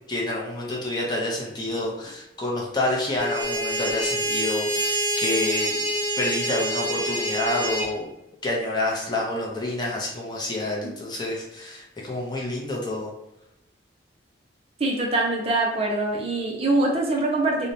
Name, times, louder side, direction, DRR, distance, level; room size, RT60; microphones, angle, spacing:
voice 1, 0.1-5.8 6.2-8.1 8.4-13.1, left 2 dB, 25° left, -3 dB, 0.5 m, -28 dB
sound 1, 3.2-7.9, right 1 dB, 15° right, 1.0 m, -26 dB
voice 2, 14.8-17.7, right 2 dB, 35° right, -1 dB, 0.5 m, -23 dB
2.9 x 2.1 x 2.6 m, 0.87 s
head